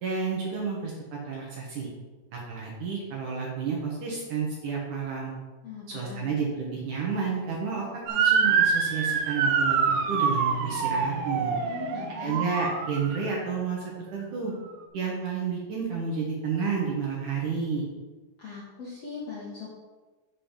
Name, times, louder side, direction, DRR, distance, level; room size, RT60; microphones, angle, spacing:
voice 1, 0.0-1.9 2.3-5.3 5.9-11.5 12.2-14.5 14.9-17.9, right 5 dB, 60° right, -3 dB, 2.3 m, -31 dB
voice 2, 5.6-6.3 11.6-12.4 18.4-19.7, left 5 dB, 60° left, -6 dB, 1.7 m, -40 dB
Motor vehicle (road) / Siren, 8.1-13.3, right 6 dB, 80° right, 2.4 m, -25 dB
7.2 x 5.4 x 5.6 m, 1.3 s
omnidirectional pair, 4.8 m